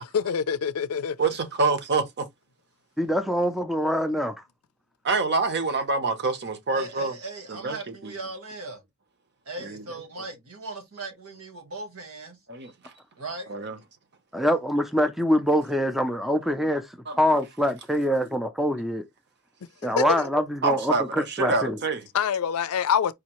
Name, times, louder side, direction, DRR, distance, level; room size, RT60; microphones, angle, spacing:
voice 1, 0.0-1.2 20.0-20.3 22.1-23.1, left 7 dB, 75° left, 0.4 m, -25 dB
voice 2, 1.2-2.3 5.0-7.1 7.5-8.1 9.6-9.8 12.5-12.7 13.5-13.8 17.1-17.2 20.6-22.0, right 3 dB, 50° right, 0.8 m, -26 dB
voice 3, 3.0-4.4 14.3-19.0 19.8-21.8, equal, ahead, 0.4 m, -24 dB
voice 4, 6.7-8.8 9.5-12.4 13.2-13.5, right 3 dB, 70° right, 1.6 m, -38 dB
4.9 x 2.7 x 3.0 m
head